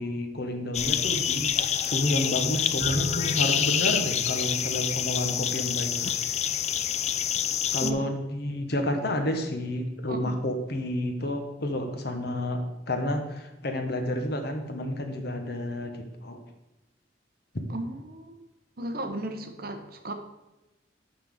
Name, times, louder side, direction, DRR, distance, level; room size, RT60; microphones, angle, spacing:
voice 1, 0.0-5.9 7.7-16.4 17.5-17.6, left 1 dB, 60° left, 5 dB, 1.1 m, -30 dB
sound 1, 0.7-7.9, left 9 dB, 35° left, 0.4 m, -27 dB
Bowed string instrument, 2.8-5.4, equal, ahead, 1.4 m, -35 dB
voice 2, 17.7-18.4 18.8-20.1, right 1 dB, 55° right, 6 dB, 0.9 m, -35 dB
5.8 x 5.6 x 6.4 m, 1.0 s
head